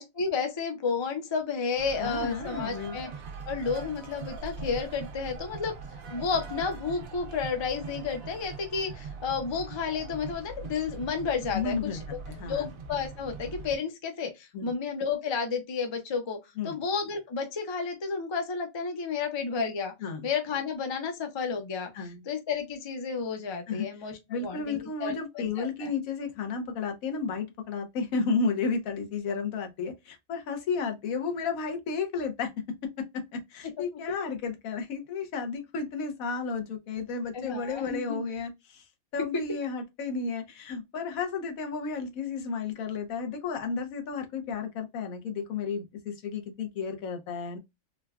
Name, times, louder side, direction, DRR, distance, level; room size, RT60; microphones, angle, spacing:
voice 1, 0.0-3.1 3.4-5.7 6.1-11.8 12.1-12.2 12.5-16.4 16.6-19.9 20.2-21.9 22.3-25.9 37.3-38.2, left 5 dB, 45° left, 0.3 m, -31 dB
sound 1, 1.8-13.8, right 4 dB, 80° right, 1.1 m, -41 dB
voice 2, 2.0-3.0 11.5-12.0 12.3-12.7 14.5-14.7 16.6-16.8 20.0-20.3 21.9-22.2 23.7-32.5 33.0-38.9 39.1-47.6, left 5 dB, 90° left, 1.2 m, -32 dB
3.6 x 2.2 x 2.3 m
omnidirectional pair, 1.4 m